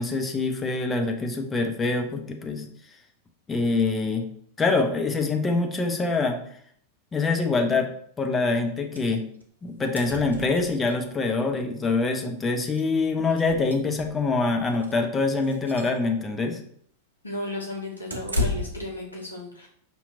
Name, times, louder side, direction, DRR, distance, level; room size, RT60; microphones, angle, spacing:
voice 1, 0.0-2.7 3.5-4.3 4.6-6.4 7.1-7.9 8.2-9.2 9.6-16.6, left 3 dB, 15° left, 4 dB, 0.5 m, -25 dB
sound 1, 8.9-9.1 9.4-9.5 9.7-11.0 12.2-12.3 12.7-12.8 13.3-14.3 14.7-15.0 15.4-16.0 18.1-18.9, left 2 dB, 80° right, 0.6 m, -32 dB
voice 2, 17.2-19.7, left 1 dB, 80° left, -2 dB, 1.1 m, -34 dB
5.2 x 2.9 x 2.5 m, 0.63 s
figure-of-eight pair, 90°, 0 cm